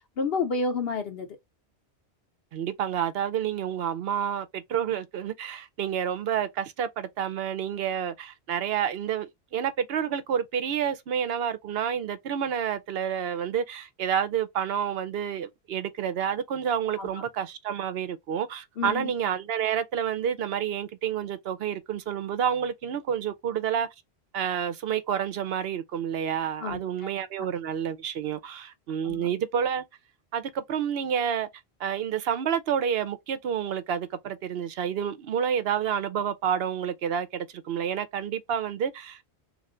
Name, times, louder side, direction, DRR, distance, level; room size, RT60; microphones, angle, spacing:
voice 1, 0.2-1.3 17.0-17.1 18.8-19.1 26.6-27.1 29.0-29.3, left 4 dB, 70° left, 0.8 m, -30 dB
voice 2, 2.5-23.9 24.3-29.8 30.3-31.5 31.8-39.2, right 8 dB, 65° right, 0.9 m, -29 dB
3.3 x 2.4 x 3.7 m
omnidirectional pair, 1.1 m